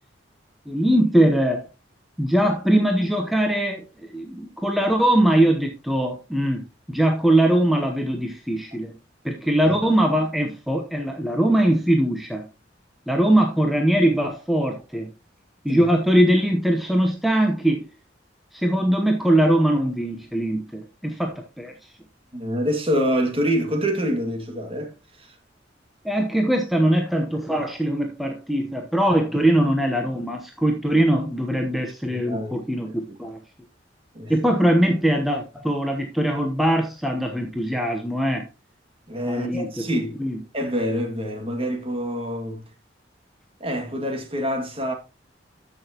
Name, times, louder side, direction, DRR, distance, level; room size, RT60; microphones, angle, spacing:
voice 1, 0.7-1.7 2.2-6.6 6.9-8.9 9.2-12.5 13.1-15.1 15.6-17.8 18.5-21.7 26.0-33.4 34.3-38.5 39.3-39.9 40.2-40.4, right 1 dB, ahead, 0.9 m, -21 dB
voice 2, 22.3-25.4 32.1-32.6 33.1-33.2 34.1-34.3 39.1-40.2 40.5-42.6 43.6-44.9, equal, 30° right, 1.9 m, -26 dB
13.5 x 6.1 x 2.9 m
head